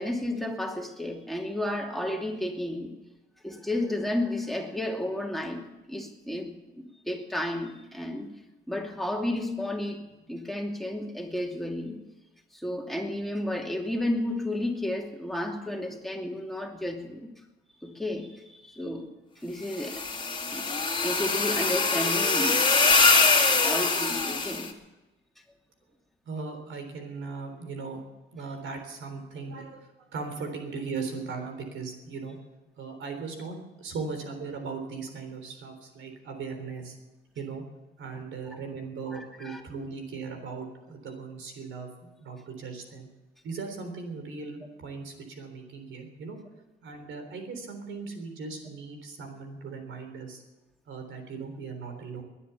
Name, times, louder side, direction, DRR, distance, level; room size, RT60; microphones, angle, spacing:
voice 1, 0.0-2.9 3.4-5.6 5.9-6.5 7.1-8.3 8.7-10.0 10.3-12.0 12.5-17.3 17.8-19.1 19.4-20.0 20.5-23.2 23.6-24.7 38.1-38.6 39.1-39.6, left 1 dB, ahead, 1 dB, 2.7 m, -32 dB
sound 1, 19.7-24.7, left 4 dB, 25° left, 2.3 m, -23 dB
voice 2, 26.3-28.0 28.3-32.4 32.8-37.0 37.4-37.6 38.0-43.1 43.4-46.4 46.8-50.4 50.9-52.2, right 4 dB, 75° right, 5 dB, 3.6 m, -38 dB
20.5 x 10.0 x 7.0 m, 1.1 s
cardioid pair, 90°, 20 cm